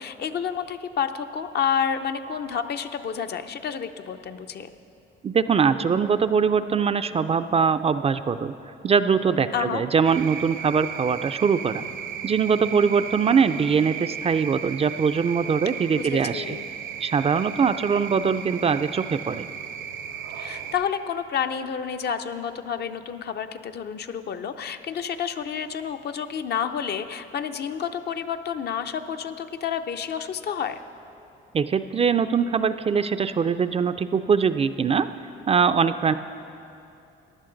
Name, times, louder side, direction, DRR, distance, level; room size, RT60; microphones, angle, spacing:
voice 1, 0.0-4.7 9.5-9.8 15.9-16.7 20.3-30.8, left 7 dB, 55° left, 8 dB, 0.6 m, -29 dB
voice 2, 5.2-8.5 8.8-11.8 12.2-16.6 17.0-19.5 31.5-35.1 35.5-36.1, right 6 dB, 30° right, 11 dB, 0.3 m, -22 dB
sound 1, 10.0-20.7, right 8 dB, 80° right, 0.9 m, -35 dB
15.5 x 10.5 x 3.9 m, 2.7 s
cardioid pair, 90°, 20 cm